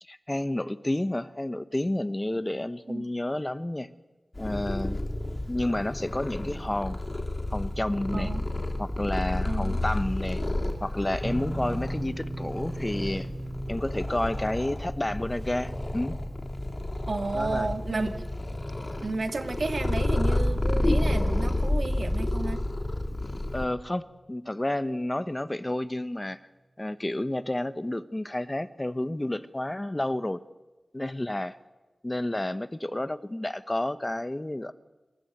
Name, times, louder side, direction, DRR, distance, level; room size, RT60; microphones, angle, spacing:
voice 1, 0.0-3.9 4.4-5.0 5.5-7.0 7.5-8.3 8.8-10.4 10.8-13.3 13.7-16.1 17.3-18.1 23.5-24.0 24.3-26.4 26.8-30.4 30.9-31.6 32.0-34.7, left 1 dB, 25° left, 13 dB, 0.9 m, -30 dB
Purr, 4.3-23.7, left 1 dB, 40° left, 2.9 m, -30 dB
voice 2, 9.5-9.8 17.1-18.3 19.0-22.6, right 3 dB, 75° right, 7 dB, 2.0 m, -32 dB
sound 1, 11.2-24.1, right 1 dB, 55° right, 2.1 m, -41 dB
26.5 x 14.0 x 7.9 m, 1.2 s
wide cardioid pair, 65°, 0 cm